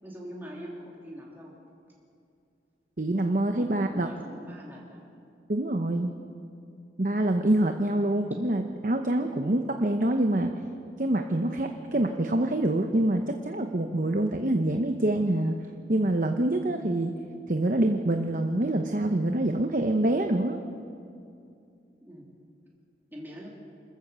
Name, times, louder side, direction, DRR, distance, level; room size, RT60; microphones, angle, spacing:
voice 1, 0.0-1.5 3.6-5.0 22.0-22.3 23.1-23.5, equal, 10° right, -4 dB, 3.0 m, -43 dB
voice 2, 3.0-4.1 5.5-6.1 7.0-10.5 11.0-15.5 15.9-17.1 17.5-20.6, right 1 dB, 45° right, 5 dB, 0.9 m, -26 dB
27.0 x 14.5 x 6.9 m, 2.5 s
head